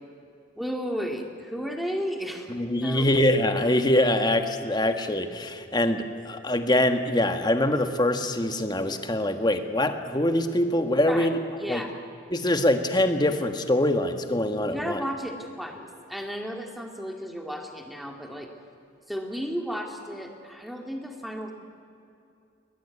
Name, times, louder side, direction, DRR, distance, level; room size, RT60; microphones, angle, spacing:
voice 1, 0.6-2.5 2.8-3.1 11.0-11.3 11.6-12.0 14.7-18.5 19.1-21.5, equal, ahead, 3 dB, 2.2 m, -33 dB
voice 2, 2.5-11.4 11.7-11.8 12.3-15.0, left 1 dB, 20° left, 7 dB, 1.3 m, -24 dB
21.0 x 21.0 x 9.6 m, 2.6 s
head